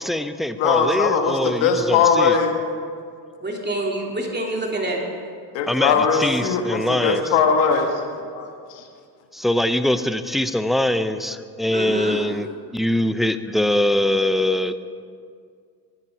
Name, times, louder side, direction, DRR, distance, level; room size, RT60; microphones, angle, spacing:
voice 1, 0.0-2.4 5.7-5.9 6.2-7.2 9.3-12.5 12.7-14.8, left 1 dB, ahead, 11 dB, 0.5 m, -22 dB
voice 2, 0.6-2.6 5.5-7.9 8.2-8.8, left 5 dB, 80° left, 4 dB, 1.6 m, -20 dB
voice 3, 3.4-5.0 11.7-12.2, right 1 dB, 20° right, 0 dB, 2.9 m, -26 dB
15.0 x 9.8 x 4.5 m, 2.2 s
supercardioid pair, 60°, 45 cm